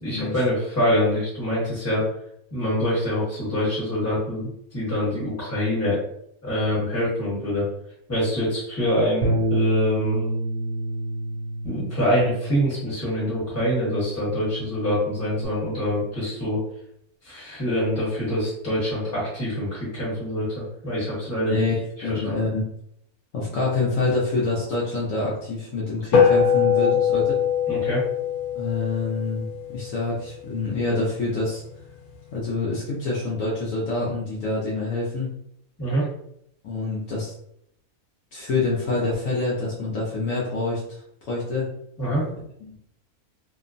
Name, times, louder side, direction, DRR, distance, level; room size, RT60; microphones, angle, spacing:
voice 1, 0.0-2.0 2.5-6.0 6.4-7.7 8.1-10.3 11.6-16.6 17.2-21.6 22.1-22.4 27.7-28.0 35.8-36.0 42.0-42.2, equal, 10° left, -8 dB, 1.1 m, -25 dB
Bass guitar, 9.2-15.5, right 1 dB, 80° right, 1.0 m, -29 dB
voice 2, 21.4-22.7 23.3-27.2 28.5-29.5 29.7-31.6 32.3-35.3 36.6-37.3 38.3-41.7 42.6-42.8, left 3 dB, 65° left, -5 dB, 1.0 m, -26 dB
sound 1, 26.1-30.8, left 7 dB, 85° left, 1.2 m, -22 dB
2.9 x 2.1 x 2.5 m, 0.73 s
omnidirectional pair, 1.6 m